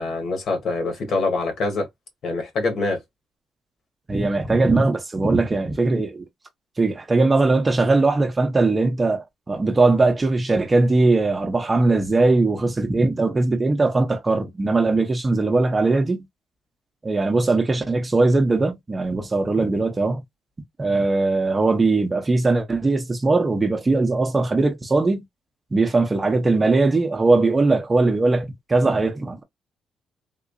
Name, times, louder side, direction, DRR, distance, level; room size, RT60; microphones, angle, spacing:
voice 1, 0.0-1.9 2.2-3.0, left 3 dB, 65° left, 1.7 m, -24 dB
voice 2, 4.1-6.3 6.8-16.3 17.0-20.2 20.8-25.2 25.7-29.4, right 3 dB, 25° right, 0.8 m, -20 dB
3.7 x 2.8 x 2.6 m
cardioid pair, 110°, 0 cm